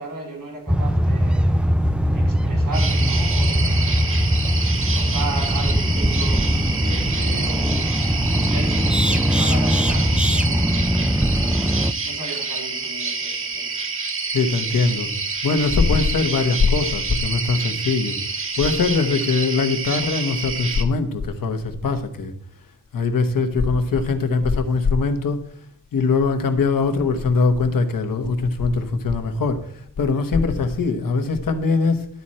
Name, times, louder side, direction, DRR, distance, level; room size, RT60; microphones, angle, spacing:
voice 1, 0.0-1.7 2.1-4.2 4.9-13.8, right 2 dB, 85° right, 1 dB, 4.4 m, -36 dB
sound 1, 0.7-11.9, equal, 5° right, 0.3 m, -20 dB
sound 2, 2.7-20.8, right 4 dB, 40° right, 1.0 m, -28 dB
voice 2, 14.3-15.1 15.4-18.2 18.6-22.3 22.9-25.4 25.9-32.1, left 4 dB, 85° left, 7 dB, 1.3 m, -21 dB
12.0 x 4.3 x 7.6 m, 0.65 s
wide cardioid pair, 125°, 33 cm